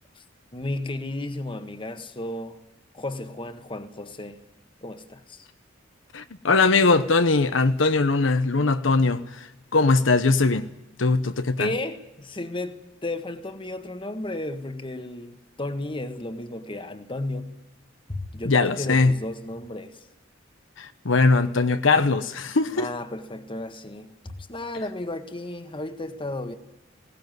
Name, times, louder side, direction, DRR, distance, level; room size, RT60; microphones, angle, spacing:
voice 1, 0.5-2.6 2.9-4.4 4.8-5.5 11.6-17.6 18.1-20.1 22.7-26.6, left 2 dB, 25° left, 1.5 m, -33 dB
voice 2, 6.1-10.7 11.0-11.7 18.4-19.1 20.8-22.9, left 3 dB, 75° left, 0.9 m, -21 dB
20.0 x 18.0 x 9.4 m
head